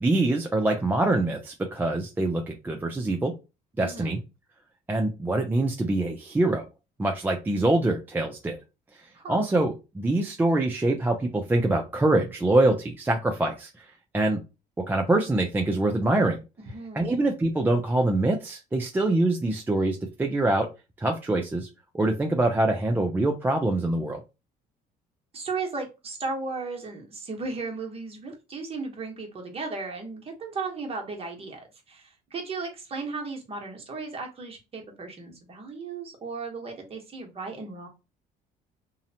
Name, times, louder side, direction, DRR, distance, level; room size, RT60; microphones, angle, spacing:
voice 1, 0.0-3.3 3.8-4.2 4.9-6.6 7.0-8.6 9.3-13.9 14.1-14.4 14.9-16.4 17.0-20.7 21.0-21.7 21.9-24.2, right 2 dB, 10° right, 2 dB, 0.3 m, -24 dB
voice 2, 3.8-4.1 9.1-9.4 16.6-17.1 25.3-37.9, right 4 dB, 35° right, 2 dB, 0.9 m, -35 dB
2.7 x 2.0 x 2.7 m, 0.27 s
cardioid pair, 110°, 17 cm